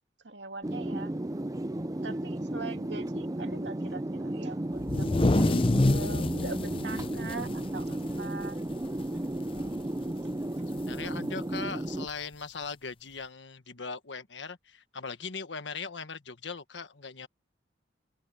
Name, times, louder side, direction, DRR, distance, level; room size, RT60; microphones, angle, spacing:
voice 1, 0.2-1.1 2.0-5.2 5.8-8.6 10.9-11.0, right 3 dB, 80° right, 2.5 m, -42 dB
sound 1, 0.6-12.1, right 1 dB, 20° right, 0.6 m, -34 dB
sound 2, 4.8-8.5 8.8-9.0 9.4-9.8 10.9-11.0 12.1-12.2, left 2 dB, 30° left, 0.6 m, -27 dB
voice 2, 10.7-17.3, left 4 dB, 85° left, 1.4 m, -39 dB
open air
head